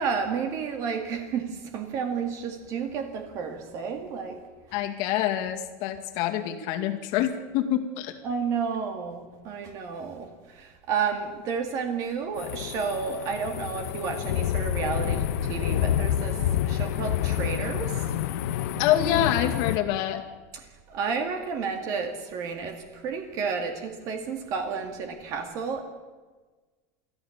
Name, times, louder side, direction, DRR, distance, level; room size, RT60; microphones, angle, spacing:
voice 1, 0.0-4.4 8.2-16.4 16.6-18.0 20.5-25.8, right 6 dB, 40° right, 5 dB, 2.1 m, -31 dB
voice 2, 4.7-8.1 18.8-20.2, left 11 dB, 50° left, 5 dB, 2.2 m, -26 dB
sound 1, 12.4-19.8, left 11 dB, 85° left, 1.2 m, -28 dB
24.0 x 14.5 x 7.3 m, 1.3 s
supercardioid pair, 160°, 8 cm